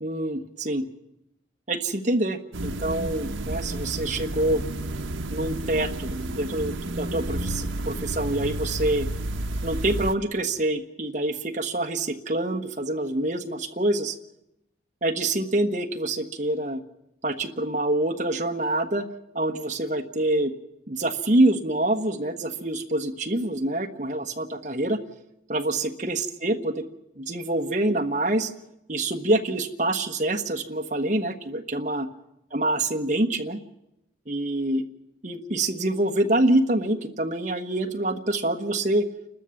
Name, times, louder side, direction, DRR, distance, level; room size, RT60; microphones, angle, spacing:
voice 1, 0.0-0.8 1.7-4.6 5.3-9.1 9.6-14.1 15.0-16.8 17.2-19.1 19.3-20.5 20.9-25.0 25.5-26.8 27.2-28.5 28.9-32.1 32.5-33.6 34.3-34.8 35.2-39.0, right 1 dB, 40° right, 5 dB, 1.3 m, -26 dB
sound 1, 2.5-10.1, right 1 dB, 75° right, 1.0 m, -31 dB
29.5 x 13.0 x 7.2 m, 0.88 s
head